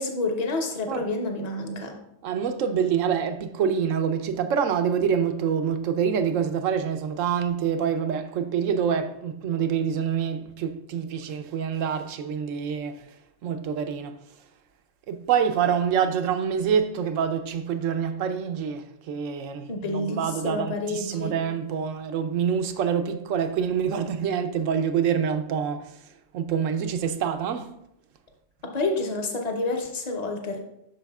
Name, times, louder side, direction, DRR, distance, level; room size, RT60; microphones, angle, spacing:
voice 1, 0.0-2.0 19.7-21.4 28.6-30.6, left 2 dB, 35° left, 0.9 m, -29 dB
voice 2, 2.2-13.0 13.4-14.2 15.1-25.9 26.3-27.7, right 7 dB, 90° right, 1.0 m, -26 dB
8.9 x 6.2 x 2.3 m
omnidirectional pair, 1.3 m